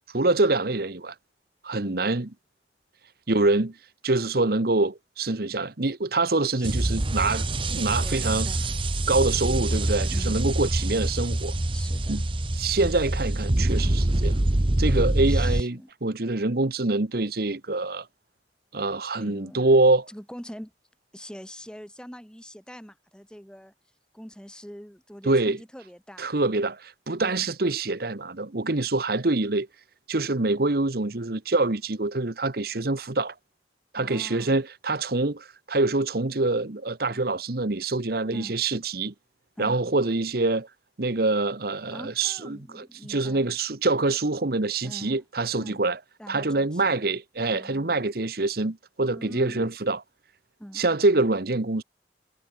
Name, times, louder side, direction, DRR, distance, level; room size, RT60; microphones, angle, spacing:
voice 1, 0.1-1.1 1.6-2.3 3.3-3.8 4.0-8.5 9.1-11.5 12.1-12.2 12.5-14.4 14.8-18.1 18.7-20.1 25.2-25.6 26.2-29.7 30.1-33.3 33.9-39.1 39.6-40.7 41.0-46.0 46.3-50.0 50.7-51.8, right 2 dB, 60° right, 1.2 m, -25 dB
sound 1, 6.6-15.6, right 1 dB, 30° right, 1.0 m, -25 dB
voice 2, 8.0-8.6 10.1-10.5 11.7-12.2 15.3-15.9 19.2-19.7 20.1-20.7 21.1-23.7 24.1-26.3 27.2-27.4 34.0-34.5 38.3-38.6 39.6-39.8 41.9-43.5 44.8-45.2 45.6-45.9 46.2-47.0 47.5-48.0 49.1-49.7 50.6-50.8, equal, 5° left, 5.7 m, -43 dB
head